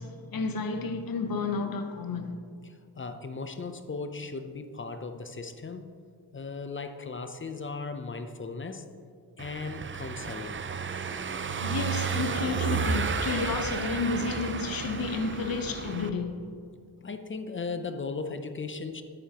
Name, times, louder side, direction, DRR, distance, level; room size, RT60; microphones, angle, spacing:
voice 1, 0.0-2.4 11.6-16.5, left 4 dB, 55° left, 0.9 m, -31 dB
voice 2, 2.6-5.9 6.3-8.9 9.4-10.6 17.0-19.0, left 4 dB, 30° left, 0.5 m, -37 dB
Car passing by / Engine, 9.4-16.1, right 5 dB, 30° right, 0.5 m, -32 dB
10.0 x 9.4 x 2.9 m
cardioid pair, 85°, 42 cm